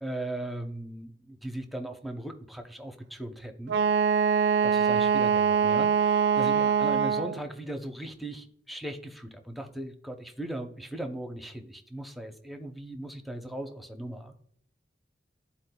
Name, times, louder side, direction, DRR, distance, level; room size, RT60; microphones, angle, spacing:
voice 1, 0.0-3.8 4.6-14.4, right 1 dB, ahead, 4 dB, 0.6 m, -38 dB
Wind instrument woodwind instrument, 3.7-7.4, right 7 dB, 70° right, 0.4 m, -23 dB
12.5 x 4.3 x 2.2 m, 0.69 s
head